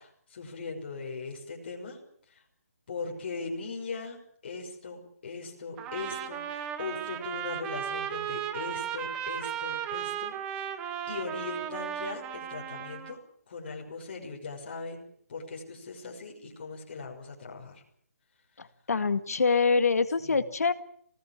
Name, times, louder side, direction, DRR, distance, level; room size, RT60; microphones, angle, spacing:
voice 1, 0.0-2.0 2.3-2.4 2.9-4.2 4.4-10.7 11.1-13.2 13.5-15.0 15.3-17.8 20.2-20.5, left 4 dB, 40° left, 0 dB, 6.1 m, -39 dB
Trumpet, 5.8-13.2, right 9 dB, 10° right, 1.0 m, -35 dB
voice 2, 18.6-20.7, left 4 dB, 75° left, 11 dB, 2.0 m, -25 dB
25.5 x 18.5 x 7.5 m, 0.65 s
hypercardioid pair, 170°, 8 cm